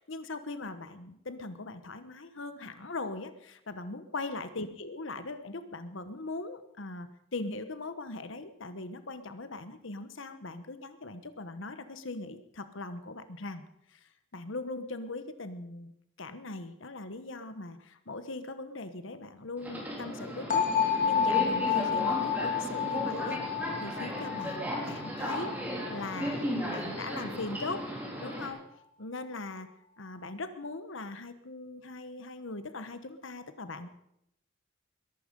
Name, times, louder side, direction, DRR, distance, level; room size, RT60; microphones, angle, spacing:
voice 1, 0.1-13.6 13.9-15.9 16.2-23.4 23.8-25.5 25.9-27.9 28.2-28.6 29.0-29.7 30.0-33.9, left 2 dB, 70° left, 10 dB, 1.2 m, -40 dB
Subway metro underground, 19.6-28.5, equal, 10° right, 3.6 m, -35 dB
sound 1, 20.5-26.3, left 7 dB, 40° left, 2.4 m, -30 dB
21.5 x 11.5 x 5.4 m, 0.77 s
head